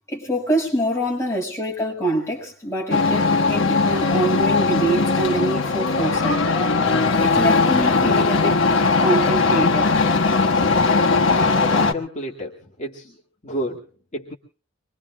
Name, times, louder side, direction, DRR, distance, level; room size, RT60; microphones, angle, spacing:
voice 1, 0.1-6.4 7.2-8.6 9.0-10.0, right 1 dB, 15° left, 6.3 m, -25 dB
sound 1, 2.9-11.9, left 3 dB, 70° left, 1.5 m, -19 dB
voice 2, 11.7-13.2 13.4-13.9 14.1-14.4, equal, 40° left, 2.2 m, -30 dB
26.0 x 22.5 x 2.3 m
head